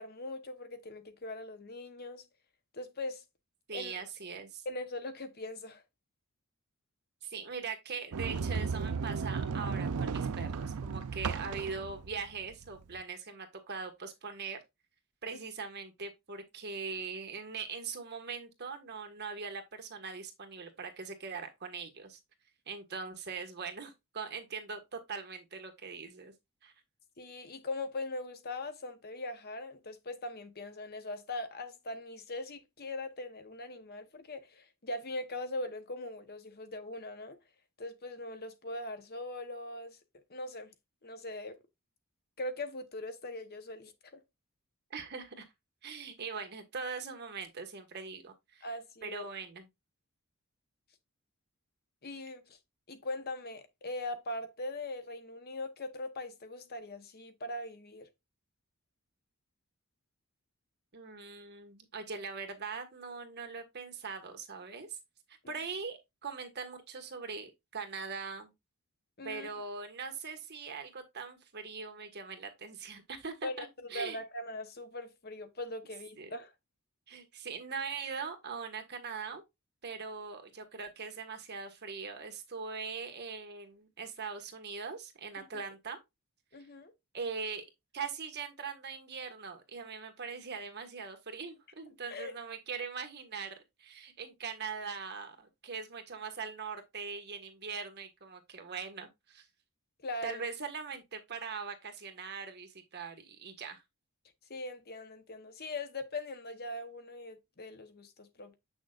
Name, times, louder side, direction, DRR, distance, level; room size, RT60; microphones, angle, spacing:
voice 1, 0.0-2.2 2.7-3.2 3.7-3.9 4.6-5.8 27.2-37.4 37.8-40.0 40.3-40.7 41.0-41.6 42.4-44.2 48.6-49.2 52.0-52.6 52.9-58.1 69.2-69.5 73.4-73.7 73.9-76.5 85.4-85.6 86.5-86.9 92.1-92.3 100.0-100.4 104.5-108.6, left 2 dB, 45° left, 1.0 m, -41 dB
voice 2, 3.7-4.6 7.2-14.6 15.2-22.2 22.7-26.3 26.6-26.7 44.9-45.5 45.8-48.7 49.0-49.7 60.9-65.0 65.3-68.5 69.2-74.2 76.1-76.3 77.1-79.4 79.8-86.0 87.1-87.6 87.9-99.5 100.2-103.8, right 5 dB, 45° right, 1.7 m, -41 dB
Sliding door, 8.1-13.0, right 5 dB, 80° right, 0.5 m, -35 dB
7.7 x 6.3 x 2.4 m
head